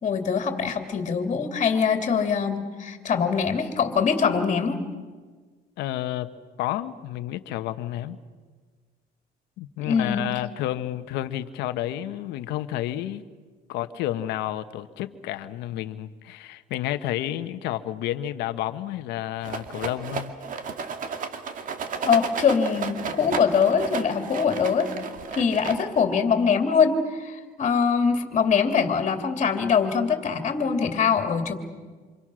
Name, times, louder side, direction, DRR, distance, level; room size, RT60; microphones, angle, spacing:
voice 1, 0.0-4.8 9.8-10.2 22.0-24.9 25.3-31.5, left 6 dB, 40° left, 2.8 m, -23 dB
voice 2, 5.8-8.2 9.6-13.3 13.7-20.3, left 13 dB, 90° left, 1.3 m, -30 dB
Rattle, 19.4-26.1, right 5 dB, 50° right, 2.2 m, -33 dB
28.5 x 27.0 x 6.4 m
cardioid pair, 110°, 17 cm